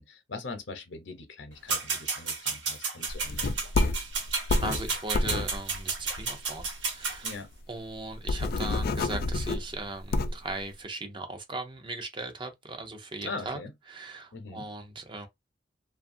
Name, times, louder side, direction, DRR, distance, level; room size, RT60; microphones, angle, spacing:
voice 1, 0.0-3.5 7.2-7.5 13.2-13.7 14.3-14.7, left 3 dB, 80° left, 0.8 m, -41 dB
sound 1, 1.7-7.4, right 4 dB, 80° right, 1.0 m, -32 dB
sound 2, 3.1-6.8 7.1-7.2 7.5-7.6 8.0-10.5, left 2 dB, 55° left, 0.4 m, -29 dB
voice 2, 4.6-6.7 6.9-7.3 7.7-13.6 13.9-15.3, right 2 dB, 25° right, 0.5 m, -38 dB
2.7 x 2.4 x 2.6 m
head